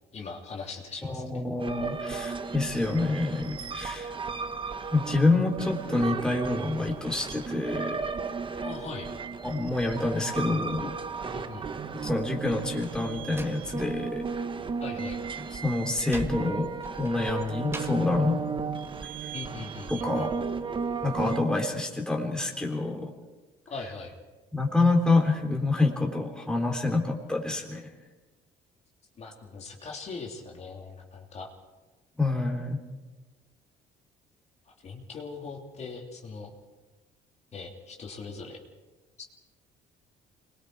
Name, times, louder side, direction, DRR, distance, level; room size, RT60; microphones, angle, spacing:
voice 1, 0.1-1.2 8.6-9.1 11.3-11.6 14.8-15.2 19.3-20.3 23.7-24.1 29.2-31.5 34.8-36.5 37.5-38.6 39.2-39.3, left 4 dB, 40° left, 0 dB, 3.2 m, -40 dB
voice 2, 1.0-4.1 4.9-8.0 9.4-10.9 11.9-14.2 15.5-16.7 17.0-18.4 19.2-19.3 19.9-20.3 21.0-23.1 24.5-27.9 32.2-32.8, left 2 dB, 5° left, 1 dB, 3.4 m, -27 dB
sound 1, 1.6-21.4, right 5 dB, 30° right, 1.2 m, -35 dB
Slam, 13.1-14.4 14.7-18.1, right 2 dB, 15° right, 1.8 m, -43 dB
26.0 x 21.5 x 4.7 m, 1.2 s
cardioid pair, 110°, 17 cm